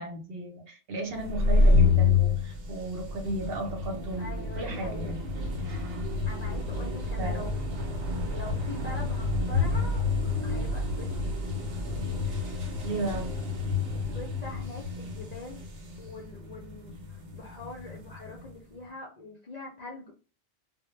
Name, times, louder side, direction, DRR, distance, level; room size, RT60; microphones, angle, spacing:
voice 1, 0.0-5.2 6.7-7.5 12.8-13.3, right 2 dB, 60° right, 1 dB, 0.9 m, -35 dB
sound 1, 1.2-18.5, left 3 dB, 90° right, 0.9 m, -29 dB
voice 2, 4.2-5.1 6.3-7.5 7.9-8.0 8.3-11.3 13.9-15.6 16.0-20.1, left 2 dB, 55° left, -2 dB, 0.5 m, -43 dB
2.1 x 2.0 x 3.0 m, 0.35 s
omnidirectional pair, 1.2 m